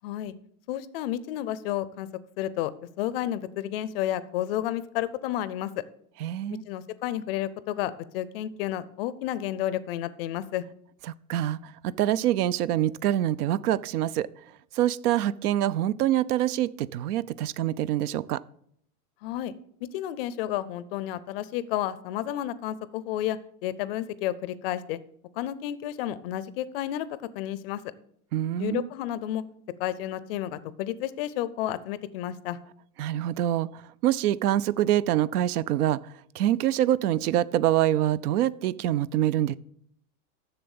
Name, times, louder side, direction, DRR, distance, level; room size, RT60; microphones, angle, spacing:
voice 1, 0.0-0.3 0.7-2.1 2.4-2.7 3.0-5.7 6.7-10.6 19.2-19.5 19.8-25.0 25.4-27.1 27.3-27.8 28.6-29.4 29.8-32.6, left 12 dB, 40° left, 17 dB, 0.5 m, -31 dB
voice 2, 6.2-6.6 11.3-14.3 14.7-18.4 28.3-28.9 33.0-36.0 36.3-39.6, right 12 dB, 75° right, 20 dB, 0.6 m, -25 dB
7.2 x 6.9 x 7.0 m, 0.68 s
supercardioid pair, 145°, 46 cm